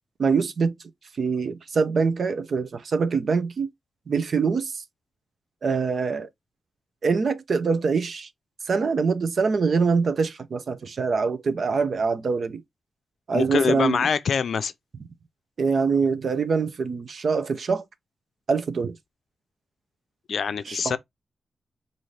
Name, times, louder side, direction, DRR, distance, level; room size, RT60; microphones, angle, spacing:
voice 1, 0.2-0.8 1.2-3.7 4.1-4.8 5.6-6.3 7.0-8.3 8.7-12.6 13.3-14.1 15.6-17.8 18.5-19.0 20.7-20.8, right 5 dB, 55° right, 0.7 m, -24 dB
voice 2, 13.3-14.7 20.3-21.0, left 6 dB, 70° left, 0.5 m, -24 dB
5.6 x 2.7 x 3.2 m
wide cardioid pair, 110°, 0 cm